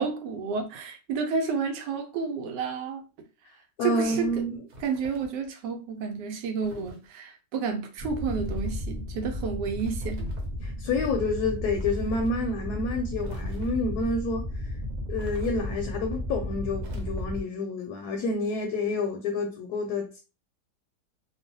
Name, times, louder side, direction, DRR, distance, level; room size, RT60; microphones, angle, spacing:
voice 1, 0.0-3.0 3.8-4.5 4.8-10.3, right 5 dB, 90° right, 1.2 m, -31 dB
voice 2, 3.8-4.6 10.6-14.7 15.1-20.2, left 2 dB, 75° left, 1.0 m, -29 dB
sound 1, 4.7-5.5 6.6-7.1 8.2-8.8 9.7-10.6 11.8-12.3 13.2-13.9 15.2-15.9 16.8-17.5, left 1 dB, 70° right, 1.3 m, -45 dB
sound 2, 8.0-17.4, left 1 dB, 40° right, 0.6 m, -34 dB
3.0 x 2.1 x 2.6 m
omnidirectional pair, 1.8 m